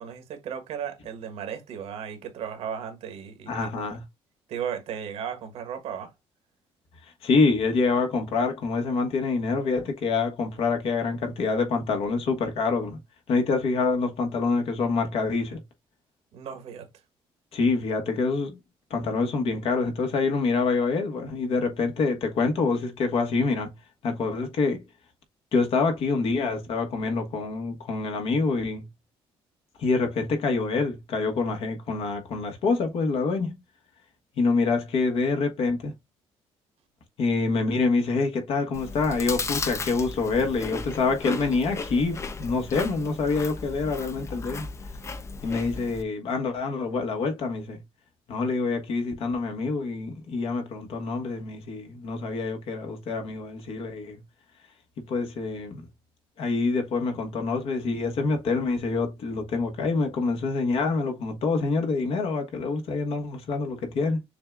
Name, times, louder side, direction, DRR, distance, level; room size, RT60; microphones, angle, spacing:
voice 1, 0.0-3.5 4.5-6.1 16.3-16.9, right 8 dB, 80° right, 1.4 m, -35 dB
voice 2, 3.5-4.0 7.2-13.0 13.3-15.6 17.5-18.6 18.9-23.7 24.0-24.8 25.5-28.9 29.8-33.5 34.4-35.9 37.2-44.7 45.4-47.8 48.3-54.2 55.1-55.8 56.4-64.2, left 4 dB, 70° left, 1.4 m, -26 dB
Chewing mastication, 38.7-46.0, left 4 dB, 25° left, 0.6 m, -35 dB
6.6 x 2.3 x 2.5 m
cardioid pair, 115°, 10 cm